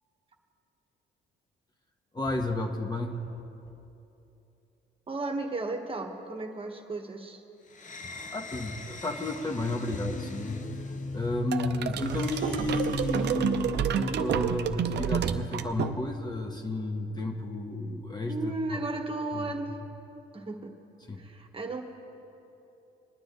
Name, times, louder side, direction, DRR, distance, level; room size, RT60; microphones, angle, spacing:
voice 1, 2.1-3.3 8.3-10.6 11.1-18.8 19.3-19.5 21.1-21.3, left 2 dB, 20° left, 3 dB, 1.2 m, -32 dB
voice 2, 5.1-7.4 18.2-19.8 20.3-20.7 21.2-21.8, right 2 dB, 25° right, 3 dB, 1.4 m, -34 dB
sound 1, 7.7-14.3, left 2 dB, 40° left, 0.9 m, -39 dB
sound 2, 11.5-16.3, right 8 dB, 60° right, 0.6 m, -30 dB
23.0 x 9.5 x 4.0 m, 2.9 s
cardioid pair, 90°, 20 cm